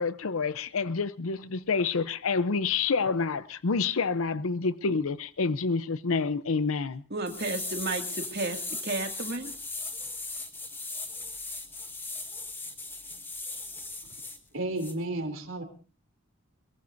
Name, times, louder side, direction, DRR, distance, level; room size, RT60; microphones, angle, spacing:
voice 1, 0.0-7.0, left 4 dB, 80° left, 0.7 m, -28 dB
voice 2, 7.1-9.5, right 3 dB, 50° right, 2.2 m, -33 dB
sound 1, 7.3-14.4 14.8-14.9, left 3 dB, 10° left, 1.5 m, -38 dB
voice 3, 14.5-15.6, right 2 dB, 75° right, 3.2 m, -32 dB
22.5 x 22.0 x 2.6 m
head